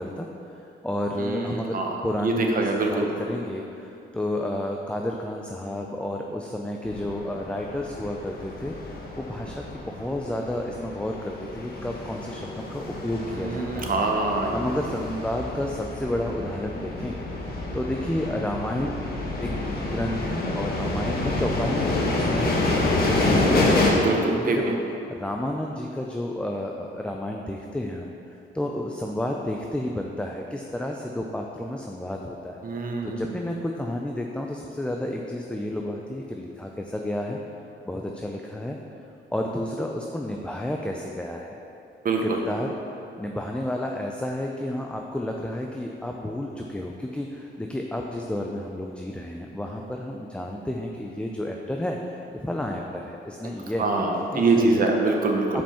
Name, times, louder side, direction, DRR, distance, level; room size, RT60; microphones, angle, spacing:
voice 1, 0.0-1.8 2.0-14.0 14.5-17.3 17.7-19.0 19.4-24.8 25.1-28.1 28.5-32.6 33.0-37.4 37.8-38.8 39.3-41.5 42.2-54.8 55.5-55.6, left 1 dB, 5° left, 1 dB, 0.4 m, -31 dB
voice 2, 1.2-1.9 2.2-3.1 13.3-14.7 23.9-24.6 32.6-33.2 42.0-42.4 53.8-55.6, right 3 dB, 45° right, 1 dB, 1.0 m, -24 dB
sound 1, 6.8-23.9, left 2 dB, 50° left, 1.3 m, -28 dB
5.3 x 5.2 x 5.6 m, 2.8 s
cardioid pair, 90°, 20 cm